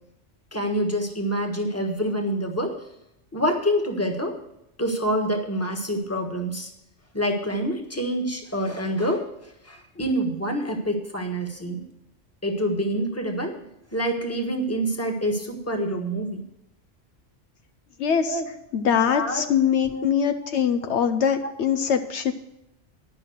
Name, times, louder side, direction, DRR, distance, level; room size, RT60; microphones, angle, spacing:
voice 1, 0.5-2.7 3.3-4.3 4.8-6.7 7.1-9.2 9.6-11.8 12.4-13.6 13.9-16.4 18.2-18.5 19.1-19.4 19.7-20.1 20.4-20.5 20.8-21.0 21.8-21.9, equal, 10° left, 3 dB, 1.4 m, -26 dB
voice 2, 18.0-18.4 18.7-22.3, left 7 dB, 75° left, 8 dB, 0.9 m, -23 dB
11.0 x 5.8 x 7.9 m, 0.85 s
omnidirectional pair, 1.2 m